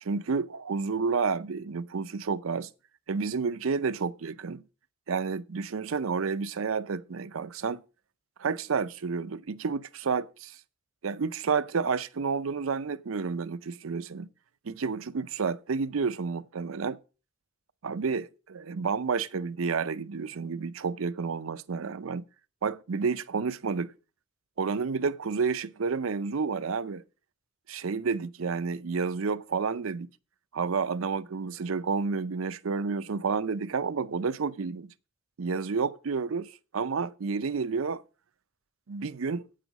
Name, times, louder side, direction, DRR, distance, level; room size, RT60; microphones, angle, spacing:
voice 1, 0.0-2.7 3.1-4.6 5.1-7.8 8.4-10.6 11.0-14.3 14.6-17.0 17.8-22.2 22.6-23.9 24.6-27.0 27.7-30.1 30.5-34.9 35.4-38.0 38.9-39.5, right 5 dB, 80° right, 0.6 m, -30 dB
8.9 x 7.6 x 5.2 m
head